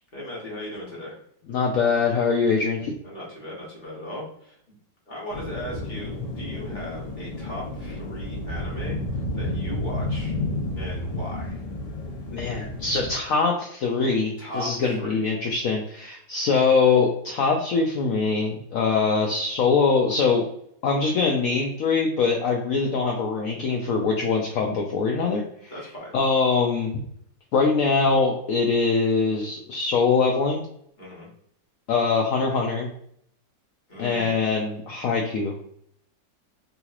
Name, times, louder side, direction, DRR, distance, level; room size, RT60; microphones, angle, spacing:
voice 1, 0.1-1.2 3.0-4.6 5.1-10.4 10.8-11.6 14.4-15.2 25.7-26.1 31.0-31.3 33.9-34.3, equal, 30° left, -4 dB, 1.0 m, -37 dB
voice 2, 1.5-2.9 12.3-20.4 20.8-25.7 26.1-26.9 27.5-30.7 31.9-32.9 34.0-35.5, left 4 dB, 90° left, 0 dB, 0.7 m, -23 dB
sound 1, 5.3-13.1, left 1 dB, 70° left, 1.4 m, -31 dB
3.8 x 2.9 x 2.4 m, 0.69 s
omnidirectional pair, 2.0 m